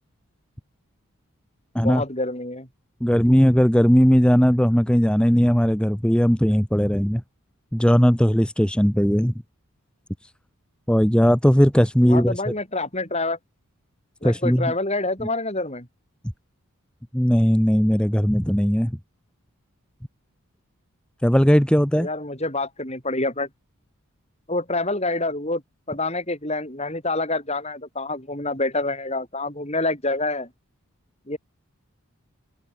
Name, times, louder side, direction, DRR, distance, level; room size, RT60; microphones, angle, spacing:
voice 1, 1.8-2.7 12.1-13.4 14.2-15.9 21.9-23.5 24.5-25.6 25.9-30.5 31.3-31.4, left 2 dB, 30° left, 6.3 m, -27 dB
voice 2, 3.0-7.2 7.7-9.3 10.2-10.3 10.9-12.3 14.2-14.7 17.1-19.0 21.2-22.1, equal, 5° left, 1.1 m, -18 dB
head